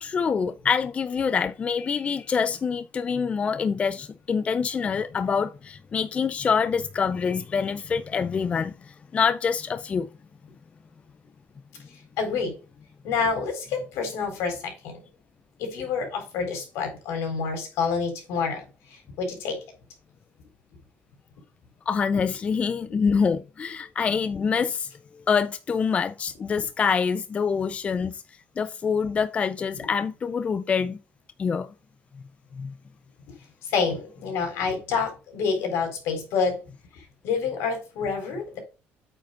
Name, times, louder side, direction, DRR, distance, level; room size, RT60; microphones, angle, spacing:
voice 1, 0.0-8.7 9.1-10.1 21.9-24.9 25.3-28.2 28.6-31.0 31.4-31.7 32.6-32.7, left 6 dB, 25° left, 0.5 m, -25 dB
voice 2, 12.2-12.6 13.0-15.0 15.6-19.6 22.9-23.0 29.7-29.9 33.6-36.6 36.9-38.6, left 5 dB, 75° left, 4.0 m, -28 dB
8.6 x 5.2 x 3.8 m
cardioid pair, 135°, 5 cm